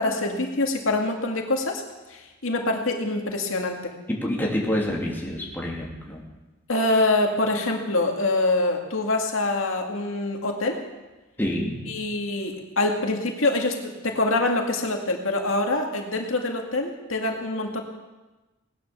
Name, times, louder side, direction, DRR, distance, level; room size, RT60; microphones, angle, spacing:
voice 1, 0.0-1.8 2.1-3.9 6.7-10.8 11.9-17.8, left 2 dB, 90° left, 2 dB, 2.1 m, -25 dB
voice 2, 4.1-6.2 11.4-11.8, left 1 dB, 10° left, -2 dB, 2.9 m, -27 dB
18.5 x 10.5 x 6.9 m, 1.1 s
head